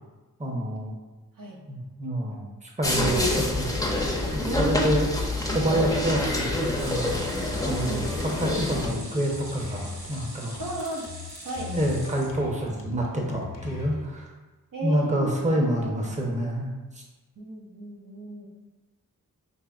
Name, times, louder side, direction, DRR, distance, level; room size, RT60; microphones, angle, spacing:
voice 1, 0.4-0.9 1.7-3.7 4.3-5.1 5.5-7.2 7.6-8.1 8.4-10.6 11.7-14.3 14.8-16.7, right 1 dB, 20° right, -1 dB, 0.9 m, -27 dB
sound 1, 2.8-8.9, left 2 dB, 10° left, 0.7 m, -27 dB
voice 2, 4.4-5.1 7.9-8.1 10.6-11.1 11.4-11.7 14.7-15.9 17.4-18.5, right 1 dB, 70° right, -2 dB, 0.9 m, -34 dB
sound 2, 6.0-14.1, left 6 dB, 65° left, 0.8 m, -40 dB
sound 3, 6.6-12.9 13.3-13.4 13.7-13.8, right 1 dB, 50° right, 1.2 m, -44 dB
5.6 x 3.2 x 2.4 m, 1.2 s
cardioid pair, 60°, 35 cm